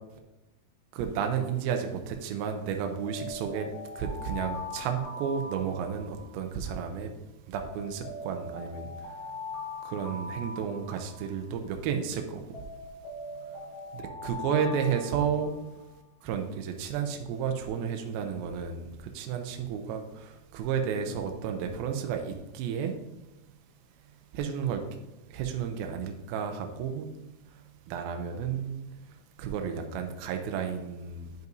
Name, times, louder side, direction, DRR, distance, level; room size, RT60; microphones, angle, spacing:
voice 1, 0.9-3.7 4.0-7.1 7.5-9.2 9.8-12.6 13.9-15.6 16.2-22.9 24.3-24.8 25.3-27.1 27.5-31.5, right 7 dB, 80° right, 4 dB, 2.2 m, -32 dB
Alarm, 3.0-6.4 7.5-11.4 12.5-15.8, left 2 dB, 45° left, 2.6 m, -41 dB
10.5 x 5.4 x 2.6 m, 0.98 s
omnidirectional pair, 4.9 m